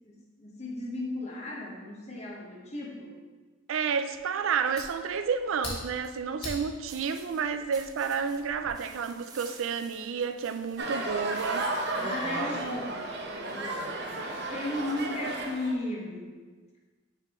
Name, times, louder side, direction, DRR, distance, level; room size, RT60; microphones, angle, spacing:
voice 1, 0.0-3.2 12.0-16.3, left 1 dB, 35° left, -2 dB, 1.1 m, -36 dB
voice 2, 3.7-11.7, right 6 dB, 85° right, 9 dB, 0.4 m, -30 dB
Fire, 4.1-8.7, left 1 dB, 55° left, 1.8 m, -44 dB
sound 1, 6.9-12.0, right 3 dB, 20° right, 0.6 m, -52 dB
sound 2, 10.8-15.7, right 2 dB, 60° right, 0.8 m, -33 dB
6.7 x 5.3 x 3.0 m, 1.4 s
head